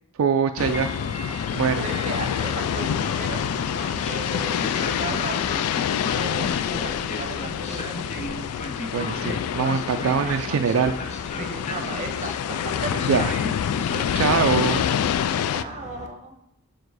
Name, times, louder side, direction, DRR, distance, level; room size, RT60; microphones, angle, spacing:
voice 1, 0.2-0.9 1.5-1.8 8.9-10.9 13.1-13.3 14.1-14.8, right 6 dB, 65° right, 6 dB, 0.3 m, -23 dB
sound 1, 0.6-15.6, left 9 dB, 80° left, 0.3 m, -27 dB
Train, 0.6-16.1, left 2 dB, 30° left, 0.6 m, -35 dB
voice 2, 1.8-3.4 4.0-5.4 6.1-8.2 10.2-10.6 11.4-12.9 13.6-13.7 15.5-16.3, right 3 dB, 35° right, 5 dB, 0.8 m, -36 dB
6.3 x 4.7 x 4.7 m, 0.83 s
head